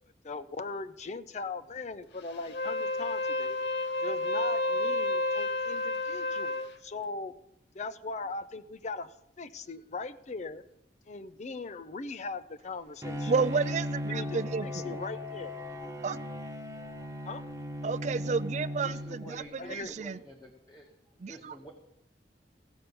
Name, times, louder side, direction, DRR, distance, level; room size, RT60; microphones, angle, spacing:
voice 1, 0.0-3.6 4.0-7.3 7.7-10.6 11.1-13.3 14.0-15.5 17.2-17.4 19.6-20.0, left 3 dB, 40° left, 0.5 m, -39 dB
Wind instrument woodwind instrument, 2.4-6.7, left 2 dB, 75° left, 0.7 m, -30 dB
Bowed string instrument, 13.0-19.7, equal, 15° right, 1.0 m, -37 dB
voice 2, 13.3-15.0 16.0-16.2 17.8-20.2 21.2-21.5, right 5 dB, 40° right, 0.4 m, -31 dB
voice 3, 18.8-20.9 21.3-21.7, right 1 dB, 20° left, 1.1 m, -49 dB
16.0 x 5.5 x 6.9 m
head